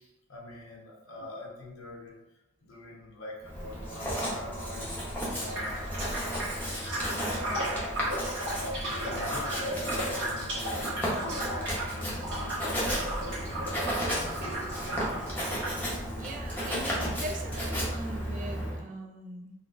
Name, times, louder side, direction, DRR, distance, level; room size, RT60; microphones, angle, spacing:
voice 1, 0.0-2.2 2.6-5.0 5.3-6.1 6.6-14.6, left 1 dB, 80° left, -2 dB, 0.9 m, -44 dB
Writing, 3.4-18.8, equal, 10° left, 0.7 m, -34 dB
sound 1, 5.5-15.9, right 1 dB, 60° right, 1.2 m, -35 dB
voice 2, 16.1-19.5, right 1 dB, 40° right, 3 dB, 0.4 m, -40 dB
3.9 x 2.2 x 2.6 m, 0.97 s
head